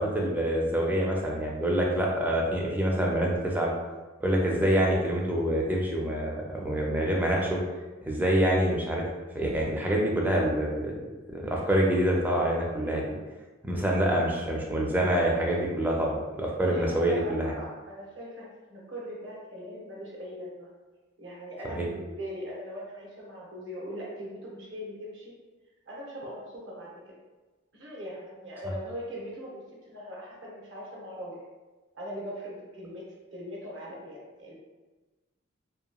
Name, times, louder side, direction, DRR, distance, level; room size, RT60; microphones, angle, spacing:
voice 1, 0.0-3.7 4.2-7.6 8.1-9.0 9.3-11.0 11.3-13.0 13.6-17.5 21.7-21.9, right 1 dB, 10° right, -2 dB, 0.4 m, -26 dB
voice 2, 16.6-20.7 21.2-25.3 25.9-27.1 27.7-31.4 31.9-33.0 33.3-34.6, equal, 70° right, -4 dB, 0.8 m, -40 dB
2.8 x 2.6 x 2.2 m, 1.2 s
head